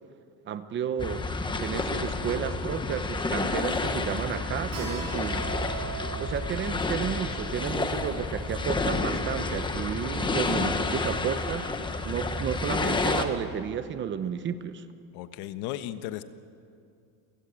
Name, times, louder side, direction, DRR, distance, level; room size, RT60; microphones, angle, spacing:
voice 1, 0.4-1.2 1.6-5.5 6.2-11.7 12.0-14.8, right 8 dB, 30° right, 11 dB, 0.8 m, -32 dB
sound 1, 1.0-13.2, left 3 dB, 10° left, 1.1 m, -30 dB
Keyboard (musical), 4.7-10.0, right 5 dB, 55° right, 5.4 m, -42 dB
voice 2, 10.2-10.7 15.1-16.2, left 13 dB, 85° left, 11 dB, 1.3 m, -36 dB
29.0 x 16.5 x 8.9 m, 2.5 s
cardioid pair, 170°, 39 cm